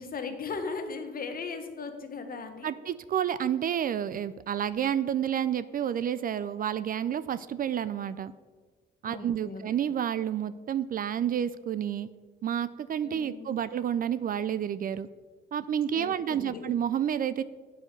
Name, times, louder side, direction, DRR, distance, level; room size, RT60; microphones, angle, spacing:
voice 1, 0.0-2.7 9.0-9.6 13.0-13.6 15.9-16.7, left 4 dB, 45° left, 6 dB, 1.2 m, -38 dB
voice 2, 2.6-8.3 9.0-12.1 12.4-15.1 15.5-17.4, right 9 dB, 45° right, 15 dB, 0.4 m, -30 dB
8.2 x 4.9 x 6.6 m, 1.4 s
cardioid pair, 90°, 20 cm